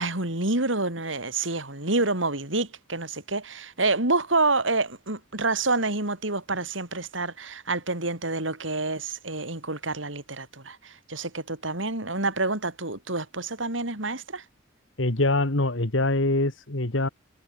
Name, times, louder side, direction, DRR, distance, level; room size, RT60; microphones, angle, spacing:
voice 1, 0.0-14.4, right 3 dB, 80° right, 6.5 m, -28 dB
voice 2, 15.0-17.1, left 2 dB, 80° left, 2.4 m, -24 dB
head